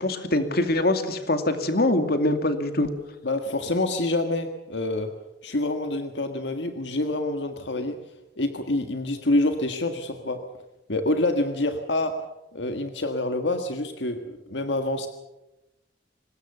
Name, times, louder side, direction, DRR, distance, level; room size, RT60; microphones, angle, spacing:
voice 1, 0.0-2.9, left 1 dB, 60° left, 7 dB, 2.4 m, -23 dB
voice 2, 3.2-5.1 5.4-8.0 8.4-10.4 10.9-12.1 12.5-15.1, left 2 dB, 85° left, 6 dB, 1.7 m, -26 dB
24.5 x 20.5 x 6.8 m, 0.95 s
head